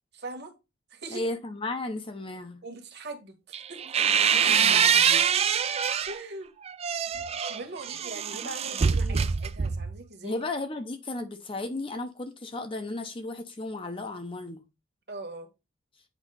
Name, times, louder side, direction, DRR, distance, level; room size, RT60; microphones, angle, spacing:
voice 1, 0.1-0.5 0.9-1.3 2.6-3.8 6.1-6.5 7.5-10.4 15.1-15.5, right 2 dB, 50° right, 1.4 m, -41 dB
voice 2, 1.1-2.6 4.5-5.3 8.4-9.3 10.2-14.6, left 2 dB, 25° left, 0.6 m, -35 dB
sound 1, 3.5-6.2 6.7-10.0, right 7 dB, 30° right, 0.3 m, -24 dB
8.2 x 2.9 x 5.6 m
head